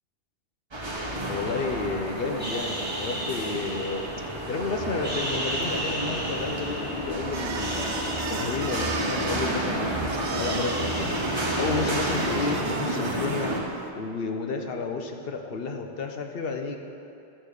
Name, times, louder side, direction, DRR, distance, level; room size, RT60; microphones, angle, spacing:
sound 1, 0.7-13.6, right 1 dB, 25° right, 1.0 m, -30 dB
voice 1, 1.3-11.3 11.6-13.5 13.9-16.8, left 4 dB, 60° left, 4 dB, 1.0 m, -31 dB
sound 2, 2.4-4.5 4.9-7.1 7.5-9.9 10.1-13.0, right 1 dB, 10° right, 1.6 m, -36 dB
sound 3, 7.3-13.9, right 5 dB, 65° right, 0.9 m, -37 dB
13.0 x 4.4 x 6.6 m, 2.6 s
omnidirectional pair, 1.1 m